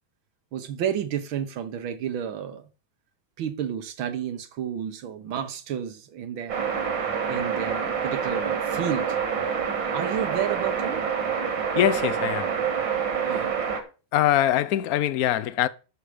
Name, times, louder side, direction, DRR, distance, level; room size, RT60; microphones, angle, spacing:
voice 1, 0.5-2.7 3.4-6.7 7.3-9.2 9.9-11.0 13.2-13.5, right 9 dB, 85° right, 1.9 m, -31 dB
sound 1, 6.5-13.8, right 7 dB, 70° right, 2.4 m, -27 dB
voice 2, 11.8-12.6 14.1-15.7, left 12 dB, 70° left, 0.9 m, -23 dB
12.5 x 6.3 x 5.0 m
omnidirectional pair, 2.1 m